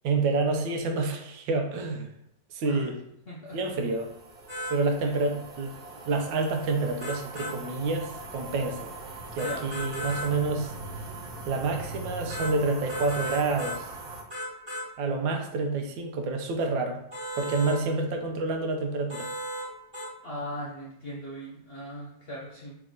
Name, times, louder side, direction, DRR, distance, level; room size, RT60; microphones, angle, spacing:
voice 1, 0.0-2.1 2.5-3.0 3.5-4.1 4.7-5.8 6.0-8.8 9.4-10.7 11.5-13.9 15.0-17.0 17.4-19.3, right 3 dB, 90° right, 4 dB, 1.4 m, -28 dB
voice 2, 3.3-3.6 5.0-5.1 9.4-9.7 20.2-22.8, equal, 80° left, -5 dB, 0.5 m, -39 dB
sound 1, 3.5-14.2, right 3 dB, 60° right, 1.1 m, -41 dB
sound 2, 4.5-4.8 7.0-7.5 9.4-10.3 12.3-12.5 12.9-13.8 14.3-14.9 17.1-17.8 19.1-19.7 19.9-20.1, equal, 15° right, 1.1 m, -35 dB
3.4 x 3.1 x 3.7 m, 0.79 s
omnidirectional pair, 2.0 m